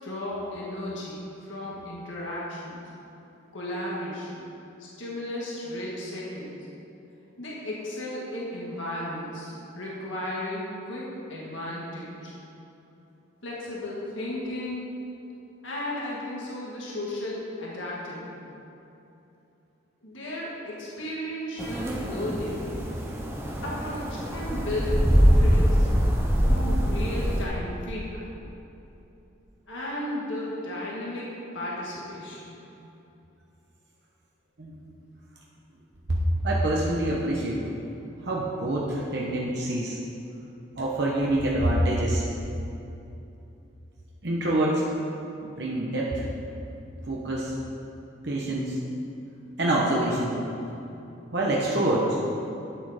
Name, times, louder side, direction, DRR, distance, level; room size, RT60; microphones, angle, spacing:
voice 1, 0.0-2.8 3.5-4.5 4.8-6.6 7.4-12.3 13.4-15.0 15.6-18.5 20.0-22.7 23.6-25.9 26.4-28.3 29.7-32.6, left 1 dB, 70° left, -5 dB, 1.7 m, -34 dB
sound 1, 21.6-27.4, equal, 15° right, 0.8 m, -23 dB
voice 2, 36.4-37.7 38.2-40.0 40.8-42.2 44.2-44.9 45.4-46.2 47.1-47.5 48.2-48.8 49.6-50.4 51.3-52.2, right 1 dB, 55° right, -4 dB, 1.0 m, -26 dB
8.7 x 7.8 x 5.0 m, 2.9 s
head